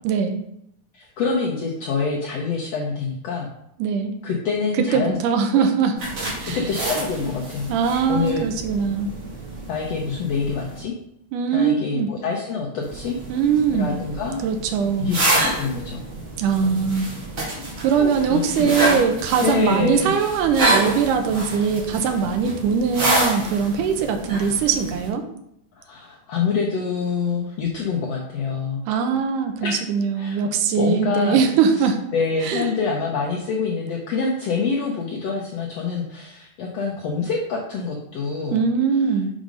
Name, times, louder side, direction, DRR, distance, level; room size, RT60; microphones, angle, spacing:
voice 1, 0.0-0.4 3.8-4.2 4.9-5.9 6.4-6.6 7.7-9.1 11.3-12.1 13.3-13.9 14.4-15.1 16.4-17.1 17.8-25.2 28.9-32.0 32.4-32.7 38.5-39.3, right 6 dB, 70° right, 6 dB, 2.3 m, -21 dB
voice 2, 0.9-3.5 4.2-5.2 5.5-5.7 6.5-7.7 8.1-8.4 9.7-10.9 11.5-13.2 13.7-14.4 15.0-16.0 16.6-16.9 17.9-19.0 19.4-20.2 25.8-28.8 29.6-29.8 30.2-30.5 30.8-31.5 31.8-31.9 32.1-38.6, left 5 dB, 80° left, -2 dB, 1.4 m, -26 dB
sound 1, 6.0-10.8 12.8-25.1, right 2 dB, 35° right, 2.7 m, -28 dB
6.3 x 5.1 x 5.2 m, 0.77 s
omnidirectional pair, 4.1 m